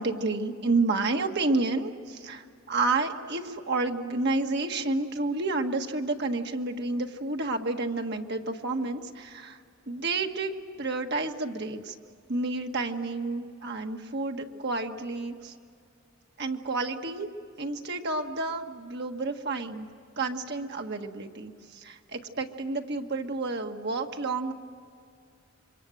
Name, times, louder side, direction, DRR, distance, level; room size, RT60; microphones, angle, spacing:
voice 1, 0.0-9.6 9.9-11.9 12.3-15.5 16.4-17.3 17.6-19.9 20.2-24.5, right 3 dB, 55° right, 4 dB, 1.5 m, -30 dB
27.5 x 24.0 x 7.8 m, 2.2 s
head